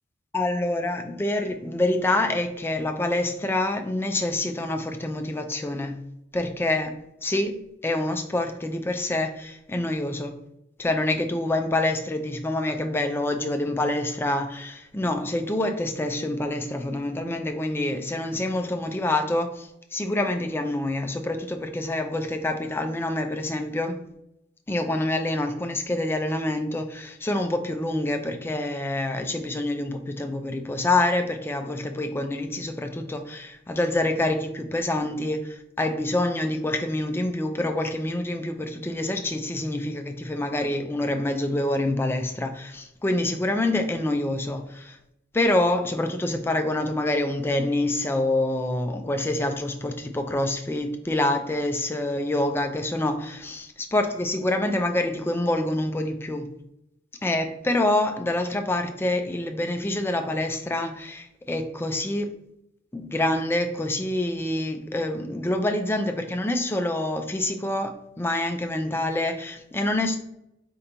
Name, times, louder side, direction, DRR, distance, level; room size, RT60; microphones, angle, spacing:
voice 1, 0.3-6.1 6.3-6.9 7.2-7.6 7.8-10.3 10.8-24.0 24.7-45.0 45.3-53.7 53.9-56.5 57.2-62.4 62.9-70.2, left 1 dB, 10° left, 0.3 m, -26 dB
4.4 x 3.8 x 2.9 m
head